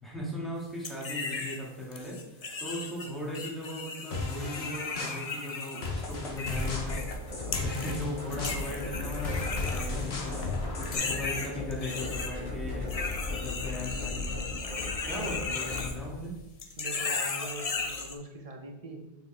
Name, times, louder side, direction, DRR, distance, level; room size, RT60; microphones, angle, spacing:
voice 1, 0.0-7.0 7.5-14.4 15.0-16.4, left 1 dB, ahead, -6 dB, 1.8 m, -38 dB
sound 1, 0.8-1.6 1.9-7.2 7.5-8.0 8.3-10.5 10.8-12.3 12.9-16.3 16.6-18.1, left 4 dB, 45° left, 0.6 m, -36 dB
sound 2, 4.1-11.0, left 3 dB, 80° left, 1.3 m, -37 dB
sound 3, 6.5-15.9, left 2 dB, 60° left, 2.6 m, -36 dB
voice 2, 16.8-19.3, right 2 dB, 40° right, 3 dB, 0.8 m, -43 dB
6.4 x 5.0 x 3.3 m, 0.98 s
omnidirectional pair, 1.0 m